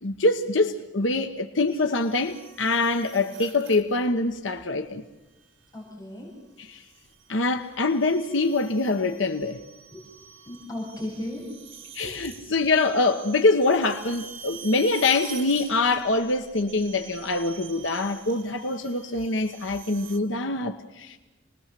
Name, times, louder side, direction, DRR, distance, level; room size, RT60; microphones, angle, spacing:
voice 1, 0.0-5.0 6.6-6.8 7.3-9.6 11.9-21.2, left 3 dB, 70° left, 1.2 m, -24 dB
sound 1, 1.7-4.1 5.4-5.8 6.6-20.2, right 8 dB, 75° right, 3.5 m, -46 dB
voice 2, 5.7-6.3 9.9-10.0 10.5-11.5 12.0-12.1, left 1 dB, 20° left, 7.7 m, -35 dB
27.5 x 21.0 x 7.7 m
head